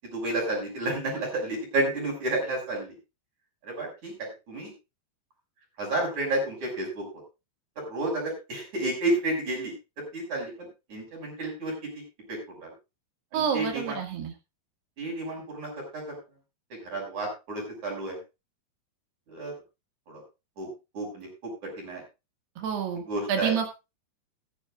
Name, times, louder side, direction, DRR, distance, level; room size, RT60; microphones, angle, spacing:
voice 1, 0.0-3.0 3.6-4.7 5.8-7.0 7.8-9.7 10.1-12.0 12.3-12.7 13.3-14.0 15.0-16.0 16.7-18.2 19.3-19.5 20.1-20.2 20.6-20.7 20.9-22.0 23.0-23.6, right 2 dB, 45° right, -1 dB, 7.4 m, -31 dB
voice 2, 13.3-14.3 22.6-23.0 23.3-23.7, right 7 dB, 75° right, 4 dB, 4.1 m, -28 dB
16.0 x 14.0 x 2.5 m, 0.27 s
omnidirectional pair, 4.8 m